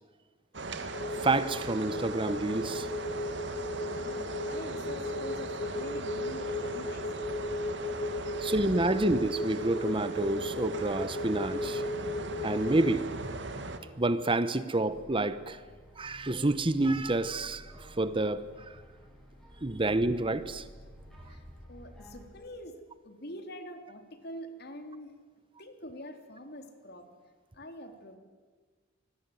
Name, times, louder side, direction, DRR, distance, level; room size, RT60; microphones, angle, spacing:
sound 1, 0.5-13.8, right 2 dB, 65° right, 2.4 m, -39 dB
sound 2, 0.9-12.9, left 2 dB, 35° left, 2.0 m, -36 dB
voice 1, 1.2-2.9 8.4-11.8 12.4-13.1 14.0-15.6 16.0-18.5 19.6-20.6, right 2 dB, 25° right, 14 dB, 1.0 m, -28 dB
voice 2, 3.8-7.1 8.2-8.3 21.2-21.4 21.7-25.1 25.6-27.1 27.5-28.2, equal, 55° left, 6 dB, 3.4 m, -45 dB
sound 3, 14.8-22.3, equal, ahead, 7.7 m, -52 dB
26.0 x 21.5 x 9.4 m, 1.4 s
head